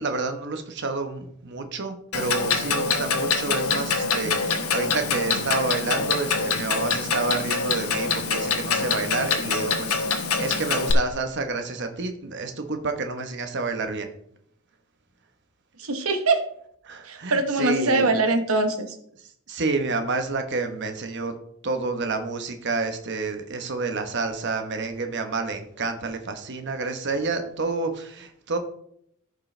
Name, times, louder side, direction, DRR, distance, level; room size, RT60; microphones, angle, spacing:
voice 1, 0.0-14.1 16.8-18.3 19.5-21.3 21.6-28.6, right 3 dB, 55° right, 7 dB, 1.0 m, -29 dB
Clock, 2.1-10.9, left 5 dB, 90° left, 1.1 m, -25 dB
voice 2, 15.8-16.4 17.1-19.0, right 2 dB, 80° right, 7 dB, 1.1 m, -23 dB
14.5 x 5.2 x 3.3 m, 0.70 s
head